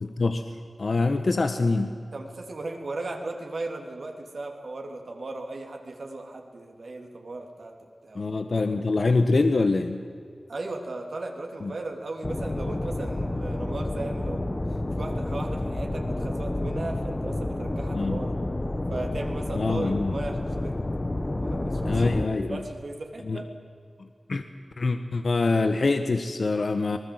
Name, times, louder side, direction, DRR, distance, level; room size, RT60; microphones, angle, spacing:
voice 1, 0.0-0.4 0.8-2.0 8.1-10.0 11.6-11.7 17.9-18.2 19.5-20.1 21.8-22.6 23.2-23.4 24.0-24.4 24.8-27.0, left 3 dB, 65° left, 7 dB, 1.3 m, -25 dB
voice 2, 2.1-8.2 10.5-18.4 18.9-20.8 21.2-22.0 22.5-23.5, right 2 dB, 70° right, 2 dB, 3.5 m, -36 dB
sound 1, 12.2-22.3, left 1 dB, 35° left, 1.8 m, -30 dB
25.0 x 20.0 x 8.1 m, 2.3 s
cardioid pair, 40°, 0 cm